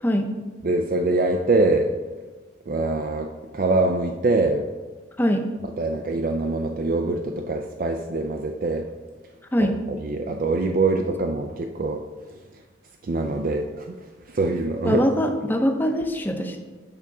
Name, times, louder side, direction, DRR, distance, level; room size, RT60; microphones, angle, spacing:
voice 1, 0.6-1.9 2.7-4.7 5.8-8.9 9.6-12.0 13.0-13.9 14.3-15.0, right 2 dB, 45° right, 4 dB, 0.4 m, -24 dB
voice 2, 14.8-16.6, equal, 10° left, 4 dB, 0.6 m, -22 dB
8.6 x 3.6 x 5.9 m, 1.3 s
head